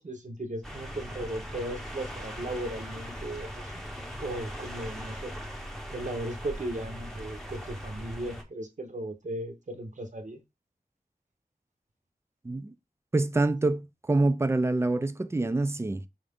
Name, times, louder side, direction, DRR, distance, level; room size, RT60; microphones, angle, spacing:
voice 1, 0.0-3.7 4.2-5.3 5.9-10.4, right 1 dB, 50° right, 0.8 m, -36 dB
sound 1, 0.6-8.4, equal, ahead, 0.8 m, -40 dB
voice 2, 13.1-13.8 14.1-16.1, right 2 dB, 15° right, 0.3 m, -26 dB
5.0 x 2.5 x 3.5 m
wide cardioid pair, 70°, 16 cm